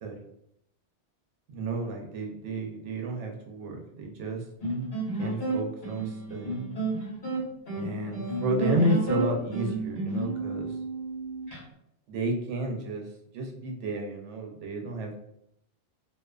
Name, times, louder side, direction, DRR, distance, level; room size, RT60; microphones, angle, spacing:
voice 1, 1.5-4.4 5.2-6.6 7.7-10.8 12.1-13.1 13.3-15.2, right 2 dB, 90° right, 2 dB, 0.9 m, -31 dB
sound 1, 4.6-11.6, right 2 dB, 55° left, 1.3 m, -31 dB
2.5 x 2.2 x 2.2 m, 0.77 s
omnidirectional pair, 1.2 m